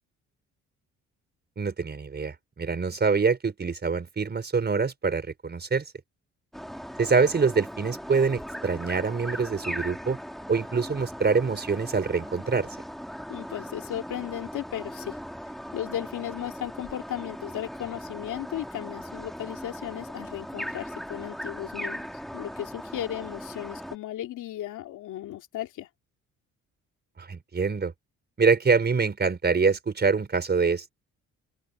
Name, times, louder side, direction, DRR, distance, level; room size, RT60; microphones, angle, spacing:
voice 1, 1.6-5.8 7.0-10.2 10.5-12.7 27.2-27.9 28.4-30.9, right 5 dB, 35° right, 4.6 m, -25 dB
sound 1, 6.5-24.0, equal, ahead, 3.7 m, -39 dB
voice 2, 13.3-22.0 22.3-25.9, left 12 dB, 80° left, 2.6 m, -36 dB
open air
cardioid pair, 90°, 30 cm